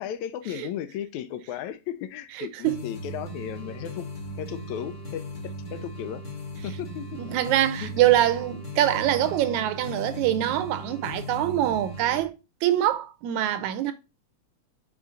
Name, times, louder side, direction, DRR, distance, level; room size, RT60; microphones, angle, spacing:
voice 1, 0.0-4.1 4.4-6.2 6.6-7.2 7.8-8.0, left 10 dB, 85° left, 2.0 m, -35 dB
voice 2, 2.4-2.8 7.1-12.4 12.6-13.9, right 12 dB, 85° right, 2.1 m, -24 dB
sound 1, 2.6-12.2, equal, 55° left, 0.5 m, -38 dB
5.6 x 4.8 x 3.8 m
omnidirectional pair, 3.3 m